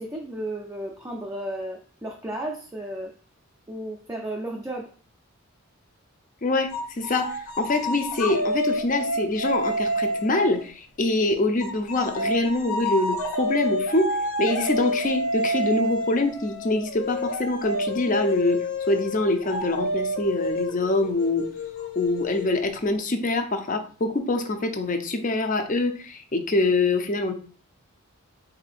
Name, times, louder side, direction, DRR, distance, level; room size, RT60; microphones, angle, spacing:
voice 1, 0.0-3.1 3.7-4.9, right 1 dB, 15° right, -1 dB, 0.5 m, -33 dB
voice 2, 6.4-14.1 14.4-21.4 21.8-27.3, left 2 dB, 35° left, 7 dB, 0.6 m, -25 dB
sound 1, 6.7-10.6 11.6-22.9, equal, 80° left, 0.7 m, -29 dB
3.7 x 2.7 x 4.2 m, 0.40 s
head